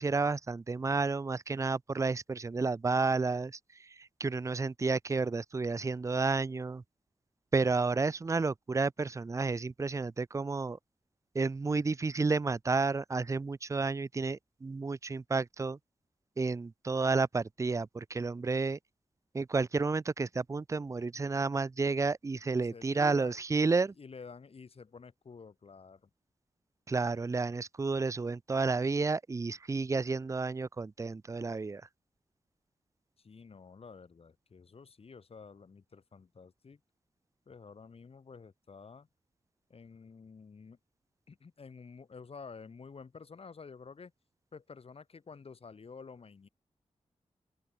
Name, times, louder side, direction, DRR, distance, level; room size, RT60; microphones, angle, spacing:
voice 1, 0.0-6.8 7.5-10.8 11.3-15.8 16.4-18.8 19.3-23.9 26.9-31.8, right 4 dB, 25° right, 0.5 m, -31 dB
voice 2, 22.5-23.4 24.0-26.1 33.2-36.8 37.5-39.1 39.7-40.8 41.3-44.1 44.5-46.5, left 5 dB, 55° left, 6.5 m, -50 dB
open air
wide cardioid pair, 115°, 12 cm